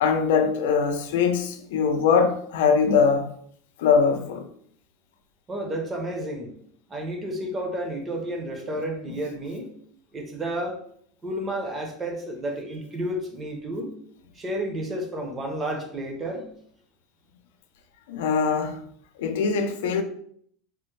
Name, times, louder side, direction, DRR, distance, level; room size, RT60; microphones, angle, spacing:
voice 1, 0.0-3.3 3.8-4.5 18.1-18.8 19.2-20.0, left 6 dB, 85° left, 0.4 m, -22 dB
voice 2, 5.5-6.5 6.9-9.7 10.1-10.8 11.2-13.9 14.3-16.5, right 1 dB, 15° right, 0.5 m, -31 dB
3.3 x 2.1 x 3.1 m
supercardioid pair, 165°, 0 cm